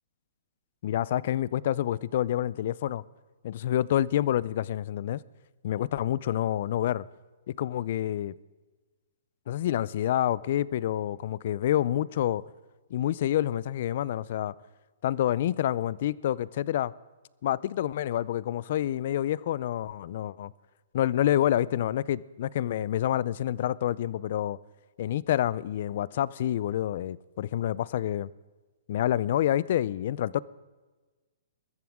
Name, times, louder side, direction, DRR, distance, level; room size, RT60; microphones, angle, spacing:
voice 1, 0.8-3.0 3.4-5.2 5.6-7.0 7.5-8.3 9.5-12.4 12.9-14.5 15.0-16.9 17.4-20.5 20.9-24.6 25.0-28.3 28.9-30.4, left 12 dB, 55° left, 0.5 m, -28 dB
22.5 x 14.0 x 3.7 m
hypercardioid pair, 145°, 0 cm